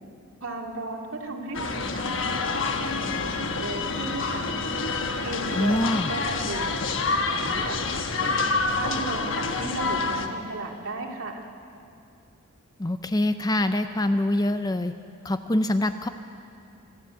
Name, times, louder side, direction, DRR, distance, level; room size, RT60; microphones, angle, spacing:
voice 1, 0.4-4.5 5.2-5.8 6.1-6.9 7.2-11.4, right 2 dB, 65° right, 1 dB, 2.3 m, -35 dB
sound 1, 1.5-10.3, left 3 dB, 60° left, 1.2 m, -27 dB
voice 2, 5.6-6.1 12.8-14.9 15.2-16.1, left 1 dB, 15° left, 9 dB, 0.5 m, -24 dB
25.5 x 12.5 x 8.2 m, 2.6 s
head